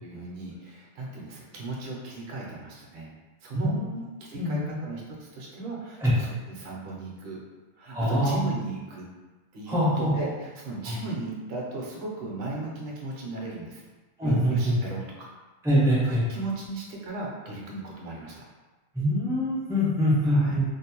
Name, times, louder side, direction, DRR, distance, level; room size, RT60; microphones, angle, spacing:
voice 1, 0.0-3.1 3.4-3.8 4.3-7.4 7.8-9.1 9.5-13.8 14.2-15.3 15.8-18.4 20.2-20.6, right 2 dB, 60° right, -2 dB, 0.7 m, -36 dB
voice 2, 3.5-4.0 4.3-4.7 6.0-6.1 7.9-8.4 9.7-10.1 10.9-11.0 14.2-14.7 15.6-16.3 18.9-20.6, equal, 5° right, -8 dB, 0.3 m, -24 dB
2.5 x 2.0 x 2.9 m, 1.2 s
omnidirectional pair, 1.4 m